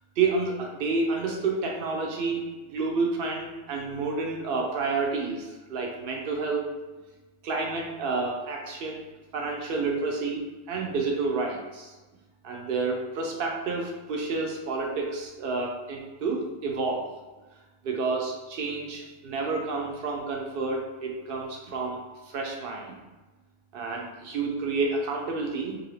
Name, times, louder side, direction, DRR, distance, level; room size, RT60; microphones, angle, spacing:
voice 1, 0.2-2.4 2.7-6.7 7.4-9.1 9.3-10.4 10.7-11.9 12.4-17.1 17.8-22.0 22.2-23.0 23.7-25.8, right 4 dB, 60° right, 0 dB, 0.6 m, -29 dB
2.7 x 2.6 x 3.1 m, 1.2 s
omnidirectional pair, 1.4 m